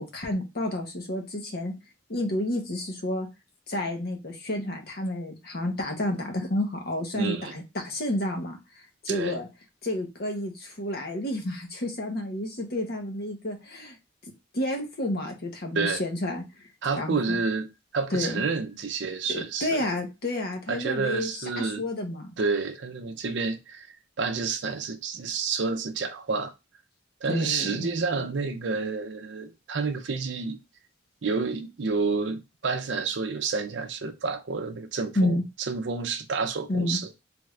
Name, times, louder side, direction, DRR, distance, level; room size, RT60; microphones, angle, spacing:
voice 1, 0.0-1.7 2.1-3.3 3.7-8.6 9.0-9.5 9.8-14.0 14.5-16.4 17.0-17.4 18.1-18.4 19.3-22.3 27.3-27.9 35.2-35.4 36.7-37.0, left 1 dB, 55° left, 0.9 m, -30 dB
voice 2, 7.2-7.5 9.1-9.4 15.7-16.0 16.8-17.7 17.9-19.8 20.7-21.8 22.4-23.9 24.2-26.5 27.2-30.6 31.2-35.4 35.7-37.1, right 4 dB, 65° right, 0.5 m, -29 dB
3.4 x 2.4 x 3.2 m
head